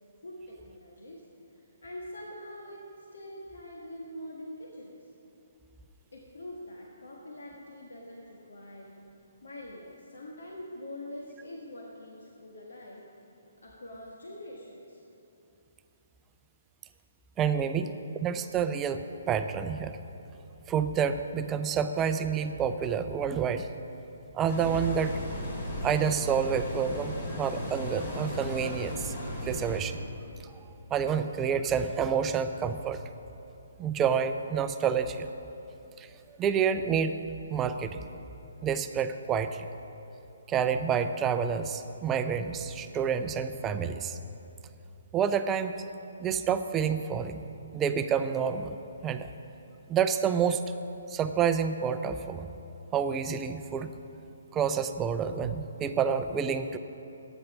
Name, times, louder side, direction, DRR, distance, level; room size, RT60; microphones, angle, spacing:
voice 1, 0.2-1.2 1.5-5.1 6.1-9.0 9.4-13.1 13.6-15.0, left 1 dB, 75° left, -2 dB, 1.5 m, -44 dB
voice 2, 17.4-17.9 18.2-19.9 20.7-23.7 24.3-25.2 25.8-29.1 29.4-30.0 30.9-33.0 33.8-35.3 36.0-36.1 36.4-37.2 37.5-38.0 38.6-39.7 40.5-44.2 45.1-45.9 46.2-47.5 47.7-48.8 49.0-49.3 49.9-50.6 51.1-52.5 52.9-53.9 54.5-56.8, right 7 dB, 15° right, 9 dB, 0.5 m, -28 dB
sound 1, 24.5-29.8, left 1 dB, 55° left, 2.8 m, -36 dB
11.5 x 9.3 x 6.1 m, 3.0 s
figure-of-eight pair, 140°, 0 cm